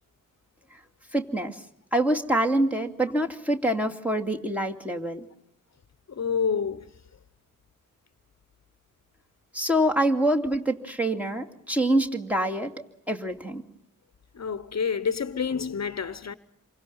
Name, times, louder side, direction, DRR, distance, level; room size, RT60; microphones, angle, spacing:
voice 1, 1.1-1.6 1.9-5.3 9.5-12.7 13.1-13.6, right 1 dB, 5° right, 2.5 m, -25 dB
voice 2, 6.1-6.9 14.3-16.3, left 6 dB, 55° left, 1.0 m, -28 dB
28.0 x 24.5 x 5.6 m
wide cardioid pair, 100°, 32 cm